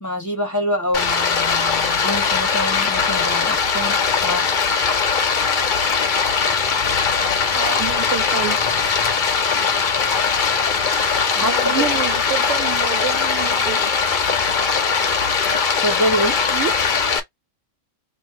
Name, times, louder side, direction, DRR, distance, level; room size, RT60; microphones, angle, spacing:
voice 1, 0.0-4.5 11.3-11.8 15.8-16.4, equal, 15° left, 1.1 m, -25 dB
Stream, 0.9-17.2, left 5 dB, 45° left, 0.8 m, -20 dB
voice 2, 7.5-8.6 11.4-13.9 16.5-16.7, right 9 dB, 70° right, 0.9 m, -28 dB
3.1 x 2.9 x 4.5 m
omnidirectional pair, 1.3 m